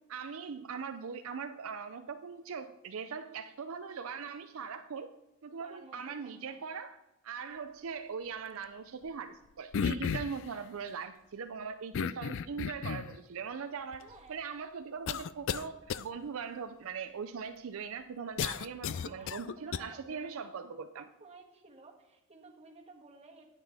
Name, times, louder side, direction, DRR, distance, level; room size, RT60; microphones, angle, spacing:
voice 1, 0.1-5.1 5.4-7.0 7.2-14.0 14.3-21.0, right 6 dB, 65° right, 8 dB, 0.5 m, -40 dB
voice 2, 5.6-6.7 14.0-14.4 18.6-20.6 21.0-23.5, right 3 dB, 30° right, 0 dB, 1.5 m, -55 dB
sound 1, 9.7-10.4 11.9-13.2 13.9-14.0 15.1-15.6 15.9-16.0 18.4-19.8, left 7 dB, 60° left, 0.4 m, -33 dB
10.0 x 9.0 x 3.5 m, 0.97 s
head